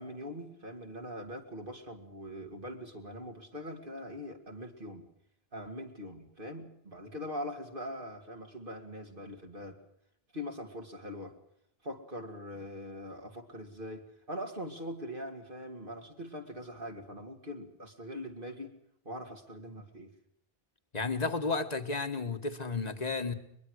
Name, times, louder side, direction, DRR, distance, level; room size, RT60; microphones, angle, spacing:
voice 1, 0.0-5.1 5.5-9.8 10.3-11.4 11.8-18.7 19.0-20.1, equal, 55° right, 3 dB, 2.8 m, -42 dB
voice 2, 20.9-23.3, left 4 dB, 40° left, 8 dB, 1.8 m, -32 dB
22.5 x 22.0 x 6.5 m, 0.73 s
omnidirectional pair, 1.0 m